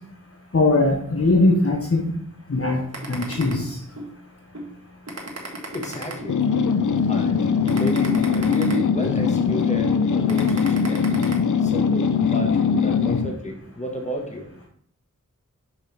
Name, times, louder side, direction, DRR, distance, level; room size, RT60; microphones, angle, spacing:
voice 1, 0.5-2.1 2.5-3.8, left 2 dB, 45° left, 1 dB, 1.0 m, -20 dB
sound 1, 2.9-4.1 4.5-4.7 5.1-6.7 7.1-7.3 7.7-9.3 9.8-9.9 10.3-11.3, right 2 dB, 50° right, 1.8 m, -35 dB
voice 2, 5.7-11.1 11.6-14.5, equal, 20° left, 2 dB, 1.6 m, -32 dB
sound 2, 6.3-13.3, left 6 dB, 70° left, 0.6 m, -21 dB
6.1 x 5.4 x 3.4 m, 0.65 s
wide cardioid pair, 50°, 31 cm